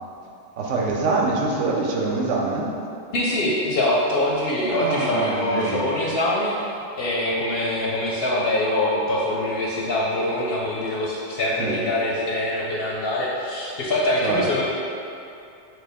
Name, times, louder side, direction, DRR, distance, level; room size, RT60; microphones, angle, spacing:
voice 1, 0.6-2.7 4.7-5.8 11.6-11.8 14.2-14.6, right 3 dB, 75° right, -2 dB, 1.0 m, -24 dB
voice 2, 3.1-6.7 7.0-14.6, left 1 dB, 65° left, -4 dB, 0.7 m, -24 dB
5.9 x 2.2 x 3.4 m, 2.7 s
omnidirectional pair, 1.3 m